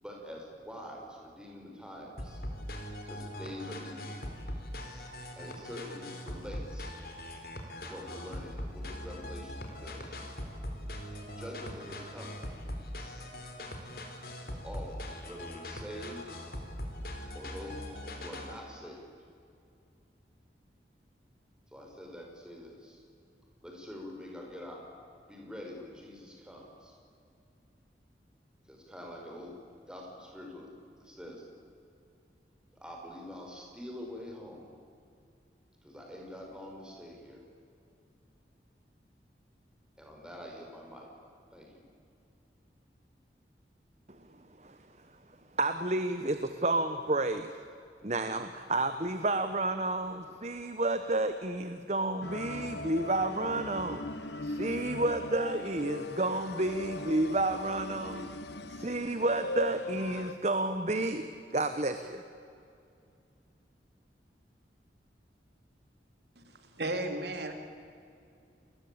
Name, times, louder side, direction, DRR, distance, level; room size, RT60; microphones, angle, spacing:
voice 1, 0.0-2.4 3.0-4.2 5.4-7.0 7.8-10.1 11.4-12.4 14.5-16.2 17.3-19.1 21.7-23.0 23.6-24.8 25.2-27.0 28.7-31.4 32.7-34.7 35.8-37.4 40.0-41.1 41.5-41.8, equal, 5° right, 0 dB, 5.8 m, -45 dB
sound 1, 2.2-18.6, left 1 dB, 60° left, 4.1 m, -41 dB
voice 2, 45.6-47.5 48.0-54.0 54.4-58.3 58.7-61.2 61.5-62.2, right 2 dB, 40° right, 9 dB, 1.1 m, -30 dB
sound 2, 52.2-60.3, left 2 dB, 80° left, 1.3 m, -39 dB
voice 3, 66.8-67.5, right 2 dB, 75° right, 6 dB, 2.9 m, -33 dB
29.5 x 21.5 x 8.7 m, 2.5 s
head